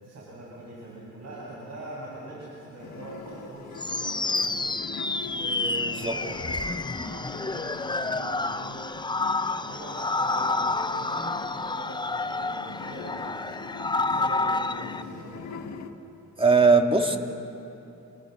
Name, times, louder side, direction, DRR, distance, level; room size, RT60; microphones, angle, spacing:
voice 1, 0.0-4.9 5.3-8.8 9.4-15.7, right 2 dB, 60° right, -6 dB, 7.5 m, -42 dB
sound 1, 2.8-15.9, left 5 dB, 65° left, 1.7 m, -42 dB
sound 2, 3.8-15.0, left 3 dB, 15° left, 0.8 m, -29 dB
voice 2, 16.4-17.2, right 4 dB, 20° right, 4 dB, 2.3 m, -19 dB
28.5 x 28.0 x 6.8 m, 2.9 s
cardioid pair, 80°, 30 cm